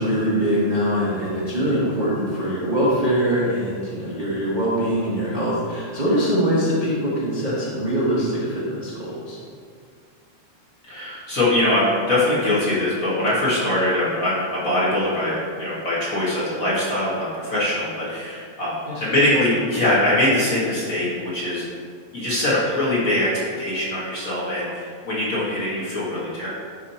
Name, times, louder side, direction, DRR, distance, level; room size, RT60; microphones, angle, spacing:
voice 1, 0.0-9.4 18.9-19.0, equal, 75° right, -9 dB, 0.4 m, -23 dB
voice 2, 10.8-21.6 22.1-23.3 23.6-26.5, left 1 dB, 35° left, -8 dB, 1.5 m, -22 dB
11.0 x 3.7 x 4.3 m, 2.1 s
omnidirectional pair, 3.4 m